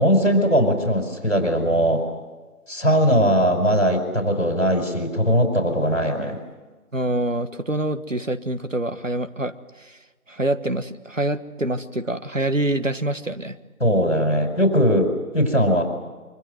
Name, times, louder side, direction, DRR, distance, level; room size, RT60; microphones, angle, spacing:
voice 1, 0.0-2.0 2.7-6.4 13.8-15.8, equal, 55° left, 5 dB, 4.9 m, -20 dB
voice 2, 6.9-9.5 9.8-10.0 10.3-13.6, right 1 dB, 60° right, 11 dB, 1.5 m, -25 dB
25.0 x 24.5 x 7.9 m, 1.3 s
figure-of-eight pair, 180°, 44 cm